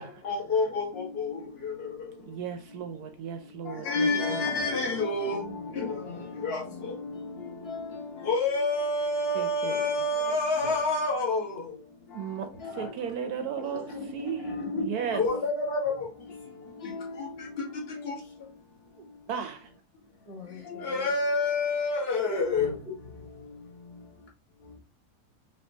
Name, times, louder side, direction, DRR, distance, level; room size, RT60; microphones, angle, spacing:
voice 1, 0.2-1.3 1.6-1.7 3.9-5.4 5.8-5.9 6.4-6.6 7.4-7.8 8.2-11.5 12.6-12.7 13.7-13.8 14.4-14.9 15.1-15.9 16.8-17.3 18.0-18.1 20.7-22.7, left 3 dB, 35° left, 1.5 m, -28 dB
voice 2, 2.2-4.4 7.4-7.6 9.3-9.8 12.1-12.5 12.7-15.2 19.3-19.7, right 8 dB, 70° right, 1.0 m, -35 dB
voice 3, 4.1-4.4 5.2-6.9 20.3-21.1, left 1 dB, 70° left, 2.2 m, -46 dB
5.2 x 2.9 x 2.7 m
omnidirectional pair, 1.9 m